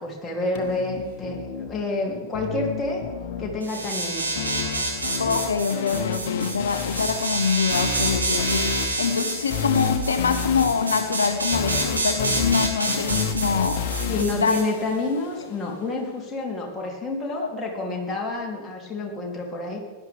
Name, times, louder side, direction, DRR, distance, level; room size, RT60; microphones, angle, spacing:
voice 1, 0.0-3.0 3.4-4.4 14.1-19.8, left 3 dB, 15° left, -2 dB, 3.3 m, -28 dB
sound 1, 0.5-15.5, left 5 dB, 50° left, 1.3 m, -31 dB
sound 2, 3.6-14.6, right 2 dB, 75° right, 2.2 m, -28 dB
voice 2, 5.2-13.9 14.3-14.6 17.4-17.5, left 5 dB, 70° left, 9 dB, 0.7 m, -24 dB
17.0 x 11.5 x 3.6 m, 1.3 s
figure-of-eight pair, 90°, 0 cm